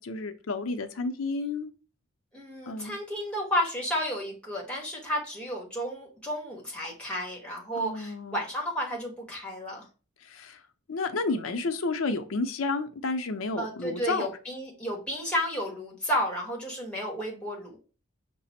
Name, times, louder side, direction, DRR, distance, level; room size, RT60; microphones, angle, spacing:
voice 1, 0.0-1.7 2.7-3.0 7.8-8.4 10.2-10.6 10.9-14.3, left 3 dB, 75° left, 7 dB, 0.5 m, -31 dB
voice 2, 2.3-9.8 13.6-17.8, equal, 5° left, -2 dB, 1.1 m, -32 dB
5.7 x 2.0 x 4.1 m, 0.35 s
head